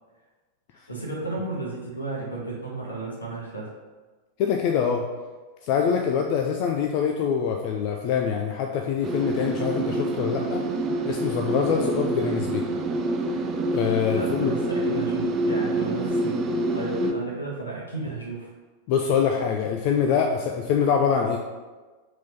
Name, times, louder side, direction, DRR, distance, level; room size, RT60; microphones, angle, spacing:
voice 1, 0.9-3.7 14.1-18.5, right 3 dB, 75° left, -3 dB, 1.7 m, -33 dB
voice 2, 4.4-5.0 5.6-10.6 11.0-12.7 13.7-14.5 18.9-21.4, left 7 dB, 45° left, 2 dB, 0.5 m, -24 dB
sound 1, 9.0-17.1, right 2 dB, 30° right, 0.6 m, -27 dB
4.9 x 3.8 x 5.4 m, 1.3 s
figure-of-eight pair, 90°, 0 cm